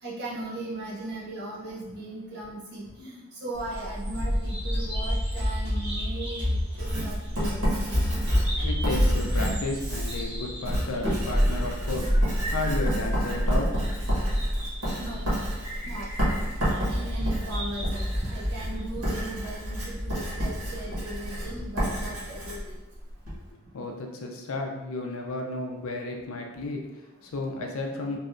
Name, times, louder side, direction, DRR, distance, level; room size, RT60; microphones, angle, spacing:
voice 1, 0.0-7.6 15.0-15.2 15.8-16.1 16.9-22.6 28.1-28.2, right 1 dB, 50° right, -5 dB, 0.8 m, -38 dB
Bird vocalization bird call bird song, 3.6-21.7, equal, 20° right, 1.1 m, -29 dB
Writing, 6.8-23.4, equal, 80° right, 1.4 m, -31 dB
voice 2, 8.6-13.7 23.7-28.2, left 2 dB, 70° left, 2 dB, 0.5 m, -33 dB
3.1 x 2.7 x 2.5 m, 1.0 s
head